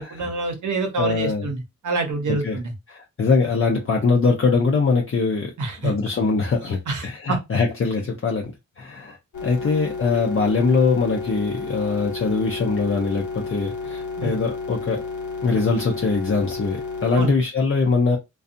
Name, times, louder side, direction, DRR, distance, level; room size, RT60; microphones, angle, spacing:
voice 1, 0.0-2.7 5.6-5.9 6.9-7.4 9.6-9.7 14.2-14.4 17.2-17.4, right 3 dB, 85° right, 0.8 m, -27 dB
voice 2, 1.0-1.5 2.4-2.6 2.9-5.5 5.8-15.0 15.4-18.2, left 4 dB, 45° left, 0.6 m, -22 dB
sound 1, 9.3-17.3, left 4 dB, 85° left, 0.7 m, -32 dB
2.6 x 2.3 x 2.5 m
cardioid pair, 65°, 30 cm